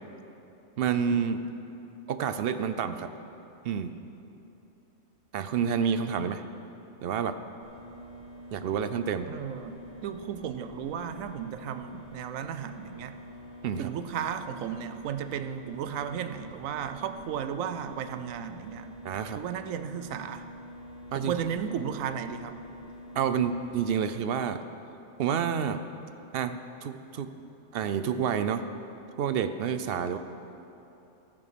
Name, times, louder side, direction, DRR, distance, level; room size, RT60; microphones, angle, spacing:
voice 1, 0.8-1.4 2.1-3.1 3.6-3.9 5.3-6.4 7.0-7.4 8.5-9.3 13.6-13.9 19.0-19.4 21.1-21.3 23.1-24.6 25.2-25.8 26.3-27.3 27.7-28.6 29.2-30.2, right 7 dB, 65° right, 10 dB, 0.6 m, -29 dB
sound 1, 7.6-23.9, equal, 30° right, 1.7 m, -46 dB
voice 2, 9.3-13.1 13.8-18.9 19.4-20.4 21.1-22.5, right 8 dB, 85° right, 9 dB, 1.0 m, -34 dB
15.0 x 6.1 x 6.7 m, 2.9 s
omnidirectional pair, 1.3 m